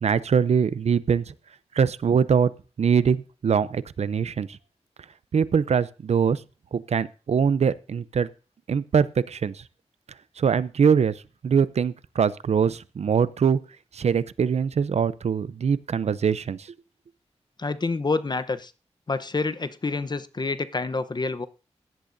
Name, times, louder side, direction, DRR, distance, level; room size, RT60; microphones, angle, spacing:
voice 1, 0.0-1.3 1.7-2.5 2.8-4.6 5.3-6.4 6.7-8.3 8.7-9.6 10.4-11.1 11.4-13.6 13.9-16.7, right 6 dB, 75° right, 17 dB, 0.6 m, -23 dB
voice 2, 17.6-18.7 19.1-21.5, left 3 dB, 40° left, 12 dB, 0.8 m, -27 dB
17.0 x 11.5 x 2.6 m, 0.33 s
cardioid pair, 60°, 11 cm